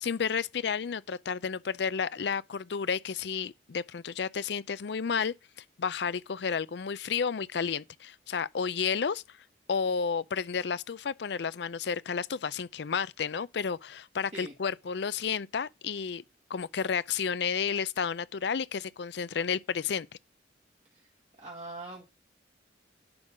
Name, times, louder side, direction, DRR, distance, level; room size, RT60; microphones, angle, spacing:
voice 1, 0.0-5.3 5.8-9.2 9.7-16.2 16.5-20.1, left 6 dB, 70° left, 0.5 m, -31 dB
voice 2, 21.4-22.0, right 2 dB, 35° right, 1.8 m, -42 dB
10.5 x 3.9 x 6.1 m
head